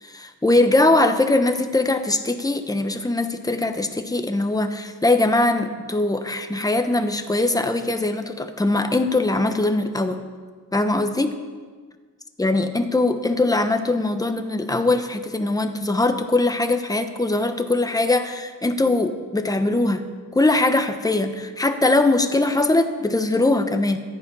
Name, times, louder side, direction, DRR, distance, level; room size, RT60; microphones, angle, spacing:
voice 1, 0.0-10.2 10.7-11.3 12.4-20.0 20.3-24.0, left 2 dB, 10° left, 8 dB, 0.9 m, -21 dB
14.0 x 9.9 x 5.6 m, 1.5 s
wide cardioid pair, 110°, 36 cm